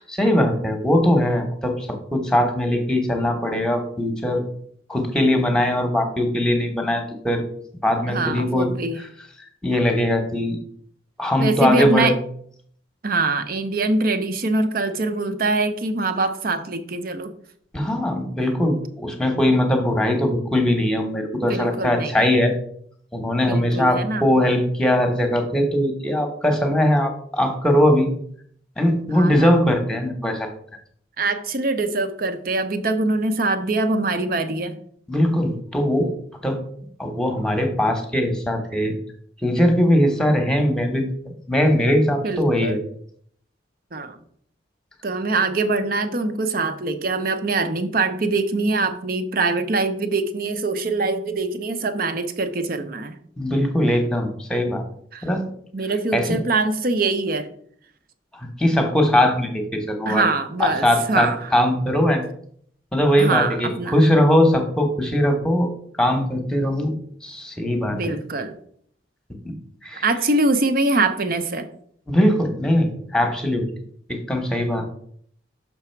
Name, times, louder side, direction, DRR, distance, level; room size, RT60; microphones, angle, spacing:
voice 1, 0.1-4.4 4.9-7.4 7.8-8.7 9.6-10.6 11.2-12.1 17.7-22.5 23.1-28.1 28.8-30.5 35.1-36.1 36.4-36.6 37.0-38.9 39.4-41.0 41.5-42.8 53.4-54.8 55.2-55.4 56.1-56.4 58.3-60.2 60.6-62.2 62.9-65.7 66.0-66.9 67.2-68.1 69.8-70.0 72.1-73.6 74.1-74.8, left 1 dB, 5° left, 5 dB, 1.0 m, -20 dB
voice 2, 8.1-9.0 11.4-12.2 13.0-17.3 18.4-18.6 21.4-22.3 23.5-24.3 29.1-29.5 31.2-34.8 42.2-42.8 43.9-44.2 45.0-53.2 55.1-55.3 55.7-57.5 60.1-61.5 63.2-64.0 67.9-68.6 70.0-71.7, right 3 dB, 50° right, 9 dB, 0.7 m, -23 dB
6.1 x 5.8 x 4.5 m, 0.62 s
head